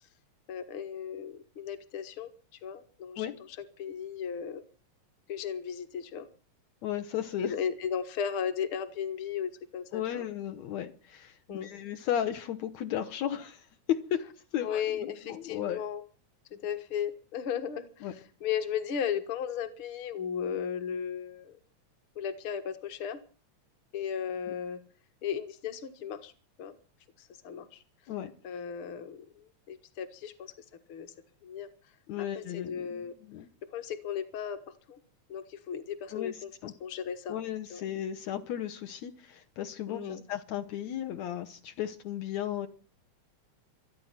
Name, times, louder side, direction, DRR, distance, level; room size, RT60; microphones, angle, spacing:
voice 1, 0.5-2.3 2.6-3.3 3.6-4.6 5.3-6.3 7.4-10.2 11.5-11.7 14.6-16.0 16.5-18.1 18.4-21.6 22.2-23.2 23.9-24.8 25.2-26.3 26.6-26.7 27.4-27.8 28.4-30.5 30.9-31.1 31.4-31.7 32.4-33.1 33.7-34.6 34.9-35.0 35.3-36.5 36.8-37.4 37.7-37.8 39.9-40.2, left 8 dB, 50° left, 2.0 m, -35 dB
voice 2, 6.8-7.5 9.9-14.2 14.5-15.0 15.3-15.8 18.0-18.1 28.1-28.3 32.1-33.5 36.1-36.7 37.3-42.7, left 10 dB, 75° left, 2.2 m, -35 dB
25.5 x 9.5 x 5.8 m
omnidirectional pair, 3.4 m